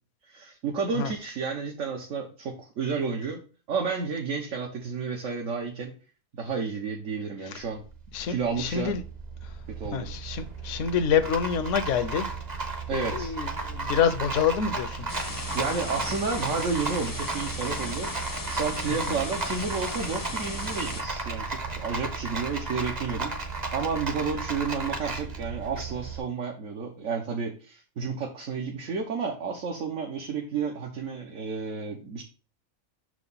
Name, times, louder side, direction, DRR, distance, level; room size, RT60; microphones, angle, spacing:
voice 1, 0.3-5.9 6.3-7.8 8.3-8.9 9.7-10.1 12.9-13.3 15.5-18.1 18.5-32.2, right 5 dB, 70° right, 1.3 m, -31 dB
Rattle, 7.6-26.2, right 3 dB, 35° right, 0.9 m, -34 dB
voice 2, 8.1-9.0 9.4-9.5 9.9-12.3 12.9-15.1 19.1-19.2, left 7 dB, 65° left, 1.0 m, -27 dB
sound 1, 15.1-21.0, left 3 dB, 20° left, 0.6 m, -37 dB
6.2 x 4.9 x 4.0 m
omnidirectional pair, 1.4 m